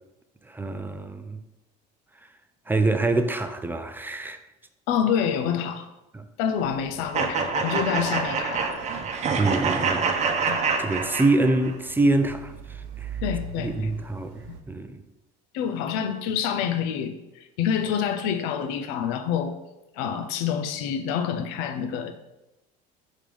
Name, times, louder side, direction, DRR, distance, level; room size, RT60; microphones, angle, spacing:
voice 1, 0.5-1.4 2.7-4.4 6.1-6.3 9.4-10.1 10.8-12.5 13.0-13.1 13.6-15.0, right 2 dB, 10° right, 0.4 m, -25 dB
voice 2, 4.9-5.9 6.4-8.8 10.5-10.6 13.2-13.9 15.5-19.6 19.9-22.1, left 8 dB, 80° left, 0.6 m, -27 dB
sound 1, 6.6-14.6, right 5 dB, 75° right, 0.8 m, -42 dB
sound 2, 7.1-11.7, right 5 dB, 35° right, 0.8 m, -26 dB
5.1 x 3.7 x 5.0 m
supercardioid pair, 110°, 19 cm